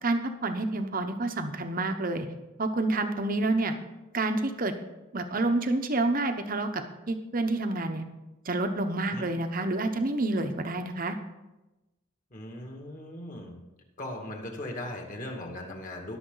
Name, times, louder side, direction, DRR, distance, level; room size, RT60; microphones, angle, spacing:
voice 1, 0.0-2.3 2.6-3.7 4.1-4.7 5.1-8.0 8.4-11.2, right 2 dB, 40° right, 7 dB, 1.0 m, -28 dB
voice 2, 12.3-13.6 14.0-16.2, left 1 dB, 40° left, 2 dB, 2.1 m, -38 dB
21.5 x 7.1 x 4.0 m, 1.0 s
head